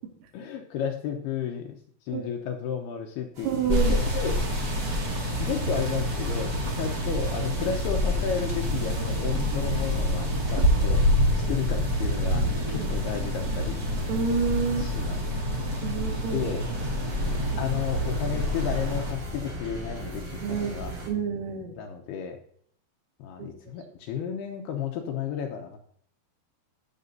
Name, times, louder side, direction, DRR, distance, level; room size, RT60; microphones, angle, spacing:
voice 1, 0.3-4.7 5.3-11.0 11.5-13.8 14.8-15.2 16.3-16.7 17.2-20.9 21.8-22.4 23.2-25.8, left 7 dB, 80° left, 3 dB, 2.4 m, -33 dB
sound 1, 3.3-21.1, right 1 dB, 35° right, 2.9 m, -41 dB
voice 2, 3.4-4.0 10.6-10.7 12.7-12.9 14.1-14.9 15.8-16.4 20.4-20.8 21.1-21.8 23.4-23.5, right 6 dB, 80° right, 3 dB, 1.6 m, -28 dB
sound 2, 3.7-19.1, left 1 dB, 55° right, 1.0 m, -27 dB
15.5 x 6.7 x 2.7 m, 0.62 s
omnidirectional pair, 5.5 m